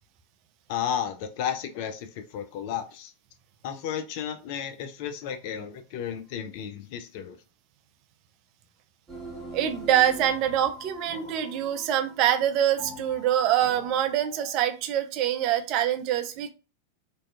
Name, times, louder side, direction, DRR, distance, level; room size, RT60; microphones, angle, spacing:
voice 1, 0.7-3.1 3.6-7.4, left 9 dB, 45° left, 0.4 m, -33 dB
sound 1, 9.1-14.5, equal, 15° right, 0.8 m, -43 dB
voice 2, 9.5-16.5, right 11 dB, 40° right, 0.3 m, -25 dB
2.6 x 2.2 x 2.3 m
figure-of-eight pair, 90°, 0 cm